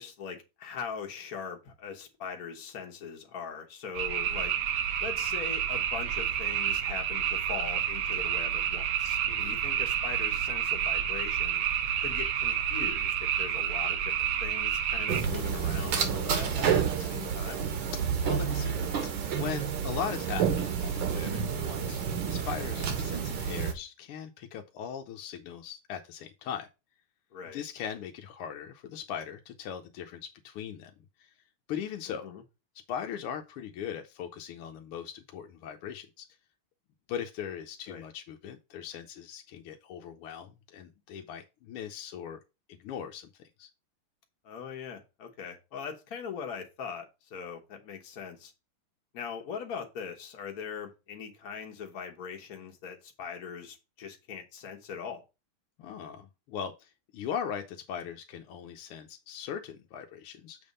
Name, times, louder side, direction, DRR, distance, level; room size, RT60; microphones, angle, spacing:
voice 1, 0.0-4.5 5.0-11.6 12.0-17.7 27.3-27.6 32.1-32.4 37.9-38.0 44.4-48.5 49.1-55.2, left 7 dB, 50° left, 1.4 m, -41 dB
sound 1, 3.9-15.2, right 9 dB, 80° right, 1.7 m, -29 dB
voice 2, 9.3-9.6 18.2-18.8 19.0-26.7 27.5-30.9 31.2-31.3 31.7-32.2 32.9-36.3 37.1-42.4 42.7-43.3 43.6-43.7 55.8-60.6, left 8 dB, 90° left, 1.6 m, -39 dB
sound 2, 15.1-23.7, right 7 dB, 65° right, 1.7 m, -30 dB
7.2 x 3.5 x 5.2 m
omnidirectional pair, 2.4 m